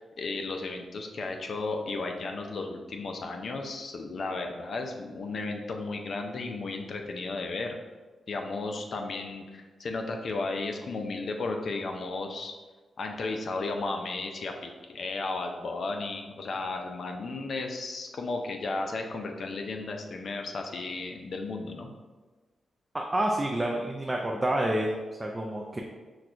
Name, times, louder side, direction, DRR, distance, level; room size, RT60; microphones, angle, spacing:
voice 1, 0.0-7.8 8.3-12.5 13.0-21.9, left 3 dB, 60° left, 3 dB, 0.4 m, -34 dB
voice 2, 22.9-24.9 25.2-25.8, right 1 dB, 20° right, 0 dB, 0.4 m, -28 dB
5.9 x 2.2 x 2.5 m, 1.3 s
cardioid pair, 80°, 0 cm